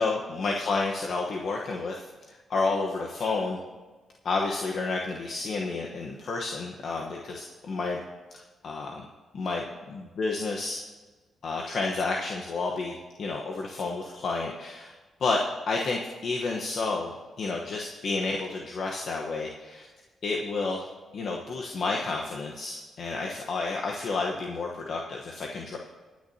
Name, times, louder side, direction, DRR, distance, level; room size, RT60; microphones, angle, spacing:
voice 1, 0.0-2.0 2.5-3.6 4.2-8.0 8.3-8.9 9.3-10.8 11.4-14.9 15.2-15.4 15.7-17.1 17.4-19.9 20.2-20.9 21.1-25.8, left 3 dB, 65° left, -1 dB, 1.1 m, -30 dB
19.5 x 9.5 x 2.8 m, 1.3 s
cardioid pair, 75°, 0 cm